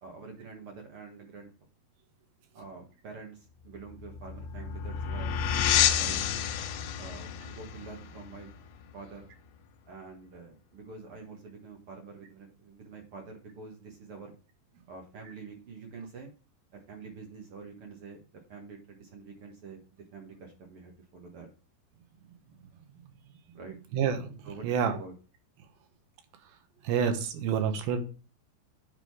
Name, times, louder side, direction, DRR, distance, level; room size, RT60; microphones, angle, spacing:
voice 1, 0.0-1.5 2.5-5.4 6.0-6.3 7.0-8.5 8.9-9.3 9.9-14.3 14.9-16.3 16.7-18.2 18.5-21.5 23.5-23.7 24.4-25.1, right 4 dB, 55° right, 2 dB, 1.7 m, -46 dB
sound 1, 3.8-9.1, left 9 dB, 80° left, 2.5 m, -30 dB
voice 2, 23.9-25.0 26.8-28.0, right 7 dB, 85° right, 7 dB, 2.8 m, -28 dB
9.0 x 3.8 x 4.7 m, 0.36 s
omnidirectional pair, 4.2 m